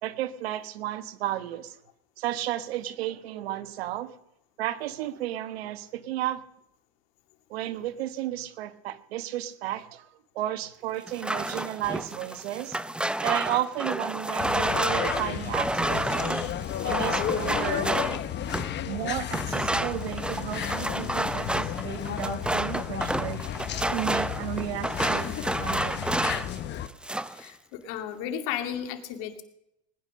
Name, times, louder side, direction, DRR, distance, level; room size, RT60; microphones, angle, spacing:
voice 1, 0.0-1.8 2.2-4.1 4.6-6.4 7.5-10.1 10.3-12.8 13.2-16.4 16.8-17.9 18.9-23.4 23.9-25.3 25.6-26.2, right 13 dB, 85° right, 13 dB, 1.2 m, -33 dB
sound 1, 11.1-18.8 19.3-26.6 26.9-27.4, right 1 dB, 5° right, 0.5 m, -30 dB
sound 2, 14.4-26.9, left 10 dB, 35° left, 1.0 m, -33 dB
voice 2, 27.3-29.4, left 9 dB, 70° left, 5 dB, 2.3 m, -34 dB
20.0 x 10.0 x 6.4 m, 0.82 s
supercardioid pair, 115°, 30 cm